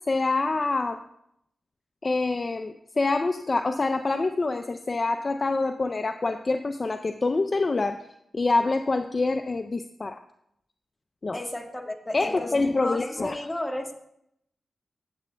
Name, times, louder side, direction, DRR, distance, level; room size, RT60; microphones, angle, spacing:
voice 1, 0.1-1.0 2.0-8.0 8.3-10.2 11.2-11.4 12.1-13.4, left 3 dB, 45° left, 7 dB, 0.4 m, -26 dB
voice 2, 11.3-12.5 12.8-13.9, left 1 dB, 20° left, 2 dB, 1.5 m, -33 dB
16.0 x 7.8 x 2.2 m, 0.76 s
cardioid pair, 65°, 0 cm